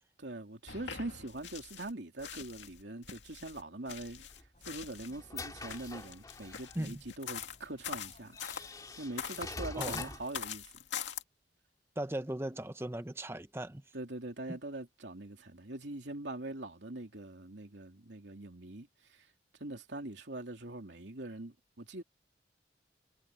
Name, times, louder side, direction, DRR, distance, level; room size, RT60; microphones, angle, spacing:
voice 1, 0.2-4.3 4.7-10.7 13.9-19.3 19.6-22.0, right 2 dB, 75° right, 2.8 m, -43 dB
sound 1, 0.7-1.9 2.2-5.2 5.6-8.7 9.2-11.2, left 8 dB, 85° left, 2.3 m, -43 dB
sound 2, 4.3-6.8 7.6-7.7 8.3-10.4, left 3 dB, 20° left, 2.4 m, -45 dB
sound 3, 4.5-10.2, left 1 dB, 40° left, 3.9 m, -63 dB
voice 2, 9.8-10.1 12.0-13.8 14.5-14.6, right 1 dB, 15° right, 0.8 m, -38 dB
head